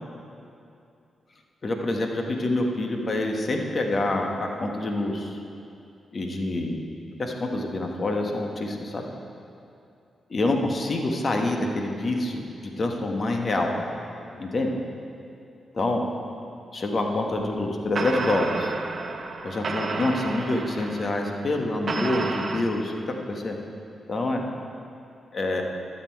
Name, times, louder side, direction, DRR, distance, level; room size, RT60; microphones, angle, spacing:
voice 1, 1.6-5.4 6.1-6.8 7.2-9.1 10.3-13.7 14.4-14.7 15.7-16.0 16.7-18.7 19.4-23.6 24.1-24.5 25.3-25.6, left 2 dB, 50° left, 2 dB, 1.2 m, -26 dB
sound 1, 17.6-17.7 18.0-22.6, right 3 dB, 60° right, 0.8 m, -31 dB
12.5 x 6.8 x 4.6 m, 2.6 s
supercardioid pair, 50°, 0 cm